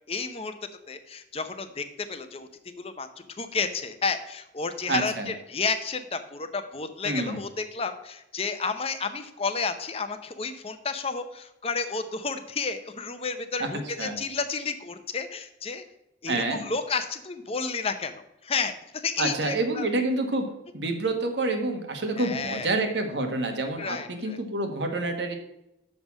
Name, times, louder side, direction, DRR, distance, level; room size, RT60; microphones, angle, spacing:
voice 1, 0.1-0.5 0.9-2.5 2.8-3.1 3.4-15.8 16.2-19.9 22.2-22.7 23.8-24.4, left 4 dB, 35° left, 9 dB, 0.6 m, -31 dB
voice 2, 4.9-5.3 7.0-7.4 13.6-14.2 16.3-16.6 19.2-20.5 20.7-25.4, right 2 dB, 75° right, 5 dB, 1.3 m, -28 dB
6.6 x 5.5 x 7.2 m, 0.86 s
head